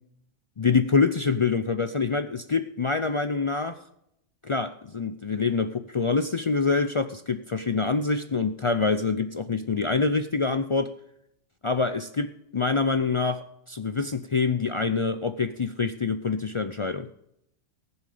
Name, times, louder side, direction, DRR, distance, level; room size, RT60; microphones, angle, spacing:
voice 1, 0.6-3.8 4.4-10.9 11.6-17.1, left 4 dB, 55° left, 10 dB, 0.3 m, -26 dB
19.0 x 7.1 x 5.0 m, 0.75 s
omnidirectional pair, 1.3 m